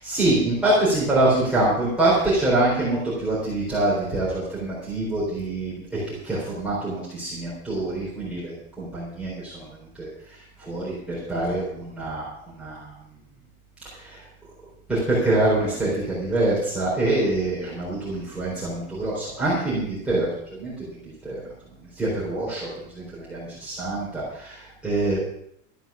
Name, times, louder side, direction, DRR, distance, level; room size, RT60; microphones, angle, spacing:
voice 1, 0.0-9.7 10.0-10.1 10.6-12.2 12.6-12.9 13.9-14.2 14.9-20.3 20.6-21.4 22.0-22.7 22.9-25.2, right 2 dB, 5° right, -9 dB, 4.0 m, -25 dB
13.5 x 9.0 x 7.0 m, 0.71 s
supercardioid pair, 180°, 39 cm